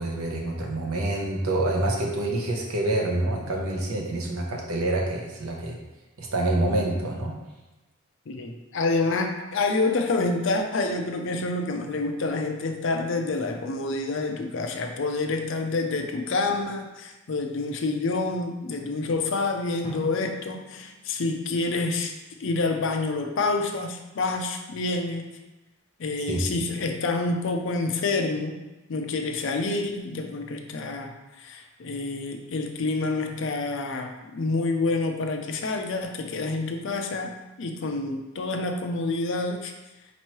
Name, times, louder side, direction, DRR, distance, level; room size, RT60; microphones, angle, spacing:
voice 1, 0.0-5.8 6.2-7.4 26.3-26.4, right 2 dB, 90° right, 0 dB, 0.8 m, -27 dB
voice 2, 8.3-22.1 22.4-25.3 26.0-28.6 28.9-31.1 31.4-37.3 37.6-39.7, left 3 dB, 60° left, 4 dB, 0.5 m, -28 dB
Drum, 19.8-22.5, right 1 dB, 15° left, 0.6 m, -47 dB
4.4 x 3.0 x 3.0 m, 1.1 s
head